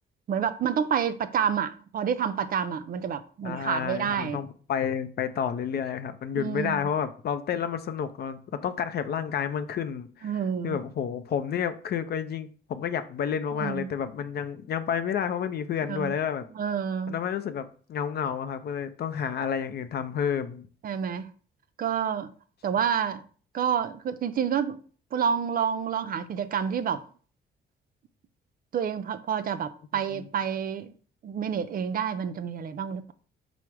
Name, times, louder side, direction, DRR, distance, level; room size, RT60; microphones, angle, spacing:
voice 1, 0.3-4.4 6.3-6.9 10.2-10.8 13.5-13.9 15.9-16.1 16.5-17.2 20.8-21.3 21.8-22.3 22.6-23.2 23.5-24.8 25.1-27.0 28.7-30.9 31.2-33.1, right 8 dB, 45° right, 0.4 m, -28 dB
voice 2, 3.4-10.3 10.6-16.5 17.1-20.7 30.1-30.3, left 8 dB, 55° left, 0.4 m, -30 dB
4.6 x 2.1 x 4.5 m
cardioid pair, 90°, 20 cm